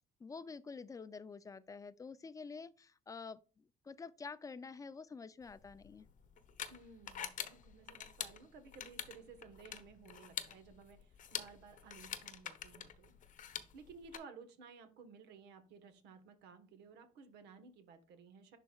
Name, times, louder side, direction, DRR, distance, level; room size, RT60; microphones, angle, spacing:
voice 1, 0.2-6.1, left 4 dB, 20° left, 0.4 m, -48 dB
sound 1, 5.5-14.2, left 9 dB, 50° left, 0.8 m, -46 dB
voice 2, 6.7-13.1 13.7-18.6, right 5 dB, 85° right, 1.3 m, -56 dB
11.0 x 4.1 x 2.4 m
cardioid pair, 110°, 17 cm